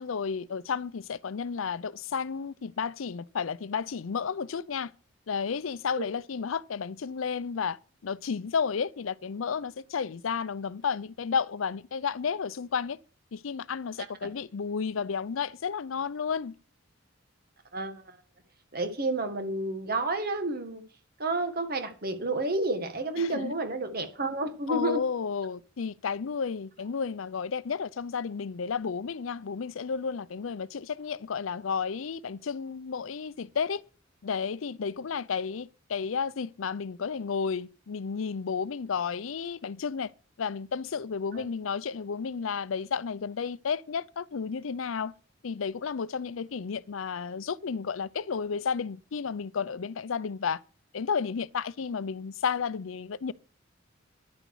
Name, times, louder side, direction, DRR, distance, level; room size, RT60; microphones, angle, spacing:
voice 1, 0.0-4.9 5.3-7.8 8.0-13.0 13.3-16.5 23.2-23.5 24.7-33.8 34.2-40.1 40.4-45.1 45.4-50.6 50.9-53.3, left 6 dB, 80° left, 0.5 m, -32 dB
voice 2, 17.7-18.2 18.7-20.8 21.2-25.0 41.3-41.4, right 2 dB, 50° right, 1.8 m, -30 dB
10.5 x 9.1 x 4.8 m
head